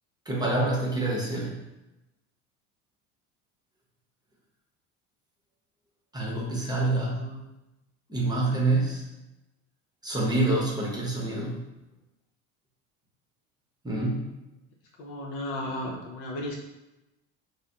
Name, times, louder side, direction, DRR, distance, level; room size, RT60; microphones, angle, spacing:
voice 1, 0.3-1.6 6.1-7.2 8.1-9.1 10.0-11.6 13.8-14.3, right 2 dB, 10° right, -3 dB, 0.8 m, -27 dB
voice 2, 7.1-7.4 15.0-16.6, left 1 dB, 65° left, -1 dB, 0.8 m, -35 dB
2.5 x 2.1 x 3.4 m, 0.95 s
hypercardioid pair, 80°, 35 cm